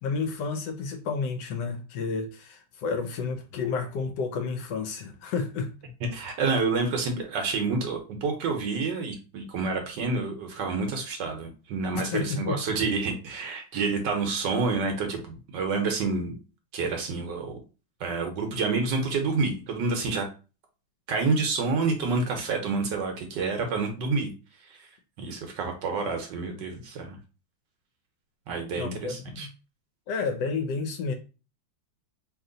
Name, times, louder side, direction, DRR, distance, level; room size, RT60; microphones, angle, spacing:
voice 1, 0.0-5.7 11.9-12.6 28.8-29.5 30.1-31.1, left 4 dB, 70° left, 1.0 m, -31 dB
voice 2, 6.1-16.3 16.7-17.6 18.0-20.3 21.1-24.3 24.7-24.9 25.2-27.2 28.5-29.5, right 4 dB, 70° right, 1.2 m, -28 dB
2.9 x 2.9 x 3.8 m
omnidirectional pair, 2.2 m